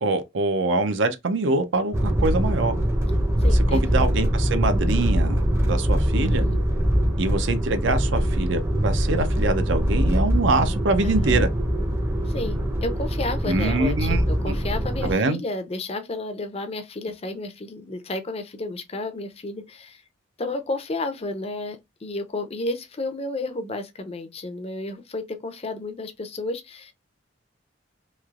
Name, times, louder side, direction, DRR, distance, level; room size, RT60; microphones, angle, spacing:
voice 1, 0.0-2.7 3.7-6.4 7.2-11.5 13.4-14.6 15.0-15.4, right 3 dB, 65° right, 0.5 m, -24 dB
sound 1, 1.9-15.1, equal, 15° right, 0.6 m, -23 dB
voice 2, 3.4-4.0 6.1-6.6 11.0-11.4 12.3-20.0 20.4-26.9, left 2 dB, 30° left, 0.5 m, -32 dB
3.1 x 2.8 x 2.4 m
head